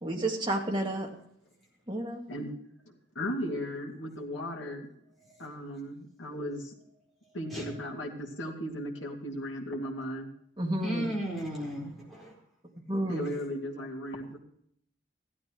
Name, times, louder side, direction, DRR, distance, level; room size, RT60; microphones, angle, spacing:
voice 1, 0.0-1.1 1.9-2.2 10.6-11.1 12.9-13.3, right 1 dB, 25° right, -1 dB, 2.0 m, -31 dB
voice 2, 2.9-4.9 5.4-6.7 7.3-10.3 13.1-14.4, equal, 85° left, -1 dB, 2.3 m, -36 dB
voice 3, 10.8-12.3, equal, ahead, -5 dB, 4.3 m, -35 dB
15.0 x 12.0 x 3.0 m, 0.69 s
head